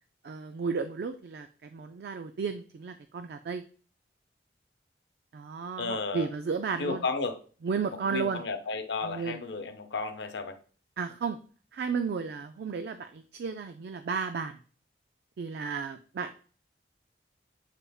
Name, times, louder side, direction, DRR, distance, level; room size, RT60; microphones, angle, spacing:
voice 1, 0.2-3.6 5.3-7.0 7.6-8.4 9.0-9.4 11.0-11.4 11.7-14.6 15.4-16.4, right 5 dB, 60° right, 8 dB, 0.3 m, -33 dB
voice 2, 5.8-6.3 6.8-7.4 8.0-10.6, left 4 dB, 75° left, 7 dB, 0.6 m, -33 dB
6.6 x 3.4 x 2.3 m, 0.40 s
head